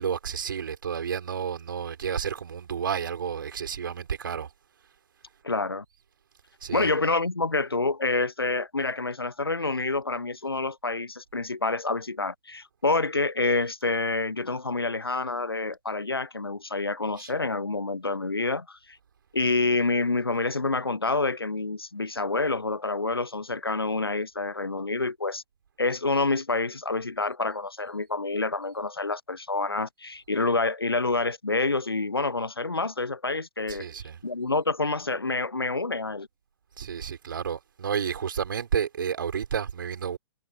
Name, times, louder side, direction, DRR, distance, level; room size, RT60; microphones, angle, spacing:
voice 1, 0.0-4.5 6.6-6.9 17.2-17.3 33.7-34.2 36.8-40.2, right 7 dB, 65° right, 5.1 m, -31 dB
voice 2, 5.4-5.8 6.7-19.0 19.3-25.4 25.8-33.9 34.2-36.3, left 3 dB, 85° left, 0.7 m, -27 dB
figure-of-eight pair, 110°, 12 cm